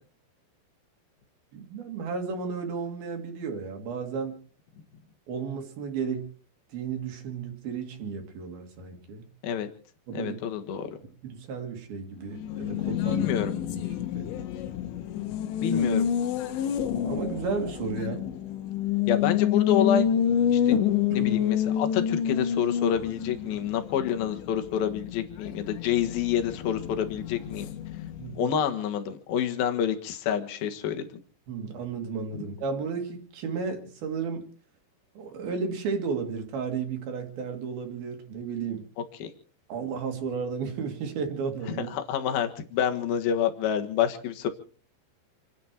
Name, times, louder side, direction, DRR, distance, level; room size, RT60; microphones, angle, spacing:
voice 1, 1.5-4.4 5.3-6.3 6.7-9.3 10.1-10.4 11.2-13.3 14.1-14.3 15.6-15.9 17.1-18.2 21.1-21.4 28.2-28.6 31.5-34.5 35.2-38.9 39.7-41.9, right 5 dB, 60° right, 4 dB, 3.6 m, -33 dB
voice 2, 10.1-10.9 13.1-13.5 15.6-16.1 19.1-20.1 20.5-20.8 21.1-27.7 28.3-31.1 32.3-32.4 39.2-39.3 41.9-44.5, left 9 dB, 65° left, 6 dB, 3.2 m, -28 dB
Race car auto racing, 12.3-28.5, left 9 dB, 85° left, 3.5 m, -28 dB
29.0 x 10.5 x 4.5 m, 0.42 s
omnidirectional pair, 5.1 m